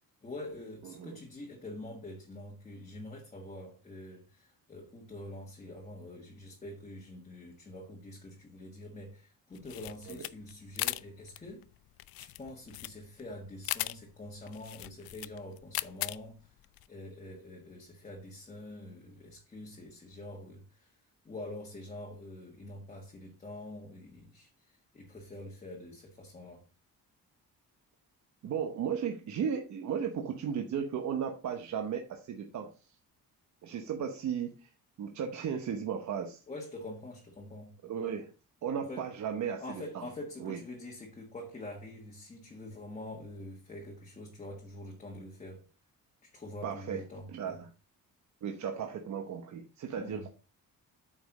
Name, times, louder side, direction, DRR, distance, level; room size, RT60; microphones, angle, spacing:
voice 1, 0.2-11.7 12.2-16.6 16.9-21.0 21.2-26.6 36.5-37.8 38.9-39.1 39.6-45.6 46.2-47.6 49.9-50.3, left 1 dB, 20° left, 1.4 m, -45 dB
voice 2, 0.8-1.2 10.1-10.2 28.4-33.0 33.6-34.7 35.0-36.4 37.8-38.3 38.6-40.1 40.4-40.6 46.6-47.0 47.3-47.7 48.4-50.3, right 7 dB, 55° right, 0.9 m, -35 dB
sound 1, 9.5-16.9, left 16 dB, 80° left, 0.5 m, -39 dB
8.6 x 5.3 x 4.0 m
cardioid pair, 175°, 35 cm